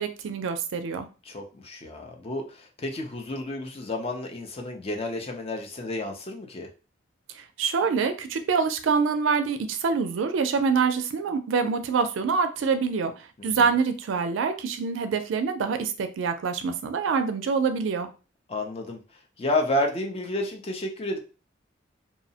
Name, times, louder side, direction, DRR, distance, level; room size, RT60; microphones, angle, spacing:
voice 1, 0.0-1.1 7.4-18.1, right 5 dB, 80° right, 9 dB, 0.4 m, -25 dB
voice 2, 1.2-6.7 13.4-13.7 18.5-19.0 19.4-21.2, left 1 dB, 30° left, 2 dB, 0.4 m, -31 dB
2.7 x 2.0 x 2.7 m, 0.33 s
head